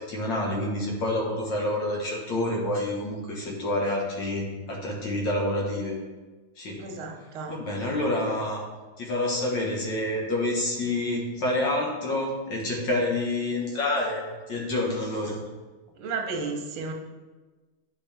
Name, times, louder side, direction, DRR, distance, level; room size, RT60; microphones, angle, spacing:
voice 1, 0.0-6.0 6.6-6.9 7.5-8.6 9.0-15.4, left 1 dB, 60° left, -1 dB, 2.1 m, -28 dB
voice 2, 6.8-7.6 16.0-16.9, right 4 dB, 80° right, 3 dB, 1.8 m, -33 dB
10.5 x 5.1 x 3.4 m, 1.3 s
omnidirectional pair, 2.3 m